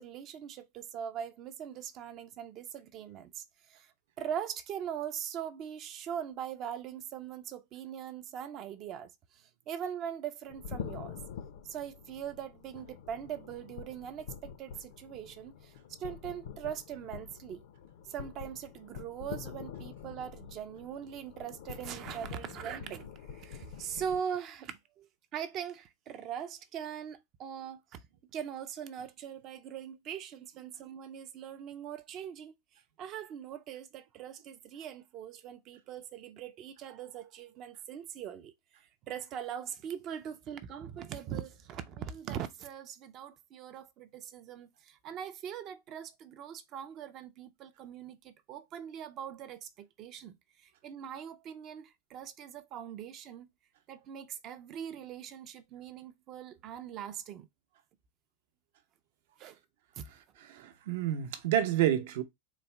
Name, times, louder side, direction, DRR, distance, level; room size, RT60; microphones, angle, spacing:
voice 1, 0.0-3.9 4.2-11.2 11.6-15.7 16.0-17.6 18.1-28.0 28.3-32.5 33.0-38.5 39.1-53.5 53.9-57.5 59.4-59.6 60.0-60.1, right 9 dB, 30° right, 0.5 m, -41 dB
sound 1, 10.5-24.2, left 7 dB, 65° left, 0.6 m, -46 dB
voice 2, 60.4-62.2, right 11 dB, 60° right, 0.7 m, -29 dB
4.0 x 2.1 x 4.4 m
supercardioid pair, 165°, 0 cm